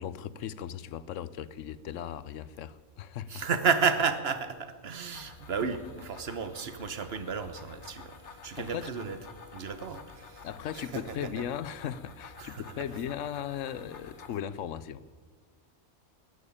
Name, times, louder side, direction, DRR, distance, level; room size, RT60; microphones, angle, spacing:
voice 1, 0.0-3.4 8.6-8.9 10.4-15.0, left 9 dB, 85° left, 17 dB, 1.0 m, -37 dB
voice 2, 3.3-9.2 9.5-10.4 10.7-11.3 12.4-12.6, right 6 dB, 55° right, 11 dB, 1.3 m, -32 dB
sound 1, 5.1-14.3, left 4 dB, 70° left, 1.6 m, -50 dB
14.5 x 11.0 x 8.6 m, 1.4 s
omnidirectional pair, 1.3 m